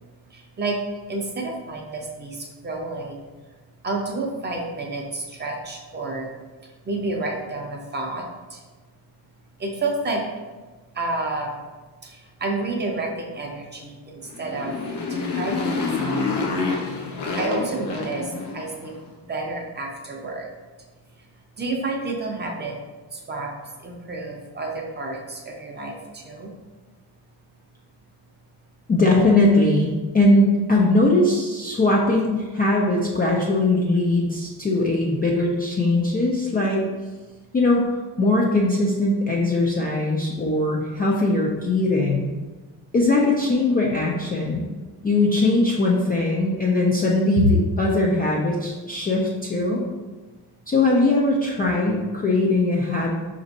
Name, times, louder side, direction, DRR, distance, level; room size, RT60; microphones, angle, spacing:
voice 1, 0.3-0.8 1.1-3.2 3.8-6.3 6.6-8.6 9.6-10.2 10.9-11.5 12.0-14.7 15.0-16.2 16.9-18.9 19.3-20.5 21.6-22.8 23.1-23.5 23.8-26.5, right 2 dB, 25° right, 0 dB, 0.6 m, -30 dB
Motorcycle, 14.3-18.9, left 4 dB, 75° left, 0.8 m, -27 dB
voice 2, 28.9-36.9 37.5-42.3 42.9-44.7 45.0-49.9 50.7-53.1, left 2 dB, 25° left, -4 dB, 0.3 m, -20 dB
5.0 x 2.6 x 4.0 m, 1.3 s
cardioid pair, 165°, 42 cm